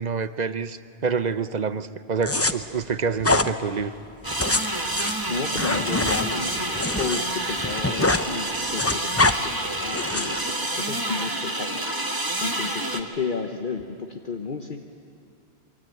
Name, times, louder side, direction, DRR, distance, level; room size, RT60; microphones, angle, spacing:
voice 1, 0.0-3.9, right 5 dB, 45° right, 13 dB, 0.8 m, -27 dB
sound 1, 2.2-2.5 3.2-3.5 4.2-7.2 7.5-8.3 8.5-9.4 9.9-10.4, left 2 dB, 15° left, 0.7 m, -24 dB
sound 2, 4.2-13.0, right 1 dB, 20° right, 1.7 m, -28 dB
voice 2, 5.3-11.8 12.4-14.8, left 4 dB, 55° left, 4 dB, 1.3 m, -32 dB
27.5 x 23.5 x 9.3 m, 2.4 s
omnidirectional pair, 1.1 m